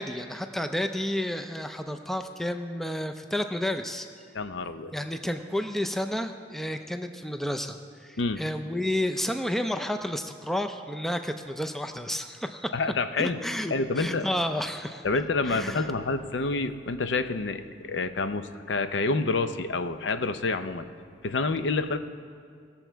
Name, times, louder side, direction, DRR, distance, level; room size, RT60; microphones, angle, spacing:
voice 1, 0.0-4.1 4.9-12.7 13.2-15.9, left 1 dB, ahead, 7 dB, 0.4 m, -31 dB
voice 2, 4.3-4.9 8.2-8.4 12.7-13.4 13.7-14.3 15.0-20.9 21.2-22.0, left 3 dB, 70° left, 10 dB, 0.5 m, -28 dB
18.5 x 7.1 x 4.5 m, 2.2 s
head